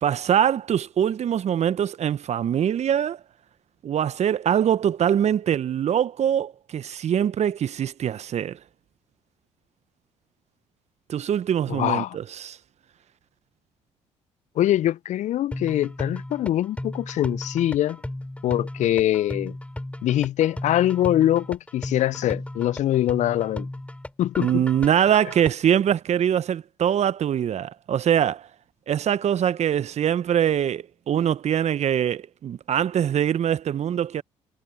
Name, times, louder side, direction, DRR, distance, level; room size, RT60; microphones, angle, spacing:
voice 1, 0.0-3.2 3.8-8.6 11.1-12.6 24.4-28.5 28.9-34.2, right 9 dB, 50° right, 1.3 m, -23 dB
voice 2, 11.7-12.2 14.6-18.0 18.4-19.5 20.0-23.7 24.2-24.6, left 12 dB, 55° left, 0.7 m, -23 dB
sound 1, 15.5-25.5, left 1 dB, 10° left, 7.3 m, -35 dB
hypercardioid pair, 50°, 14 cm